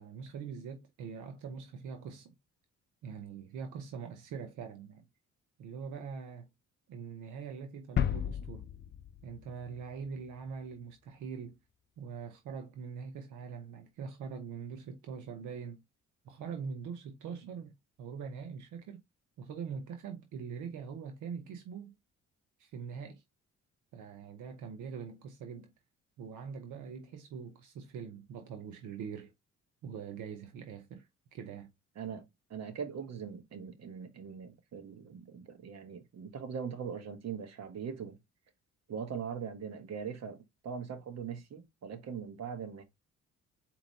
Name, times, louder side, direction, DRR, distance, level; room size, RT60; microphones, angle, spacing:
voice 1, 0.0-2.4 3.0-5.0 5.6-6.5 6.9-8.7 9.2-11.6 12.0-15.8 16.2-17.7 18.0-19.0 19.4-21.9 22.6-23.2 23.9-25.7 26.2-29.3 29.8-31.7, right 6 dB, 85° right, 0.8 m, -43 dB
sound 1, 8.0-10.6, left 9 dB, 40° left, 0.4 m, -35 dB
voice 2, 32.0-38.2 38.9-42.8, right 7 dB, 60° right, 1.2 m, -41 dB
4.4 x 2.9 x 4.0 m
cardioid pair, 90°, 30 cm